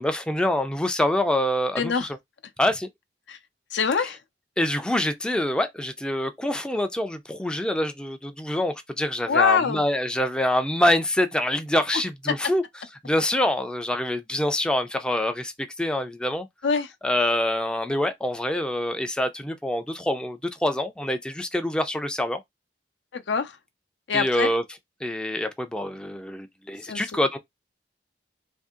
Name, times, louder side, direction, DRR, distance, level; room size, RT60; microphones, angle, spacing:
voice 1, 0.0-2.1 2.6-2.9 4.6-12.6 13.0-16.5 17.0-22.4 24.1-24.6 25.0-27.4, left 1 dB, 5° left, 0.3 m, -25 dB
voice 2, 1.8-2.1 3.3-3.4 3.7-4.2 9.3-9.8 16.6-16.9 23.1-23.6 24.1-24.5 26.8-27.2, left 5 dB, 85° left, 0.5 m, -24 dB
2.7 x 2.7 x 3.6 m
head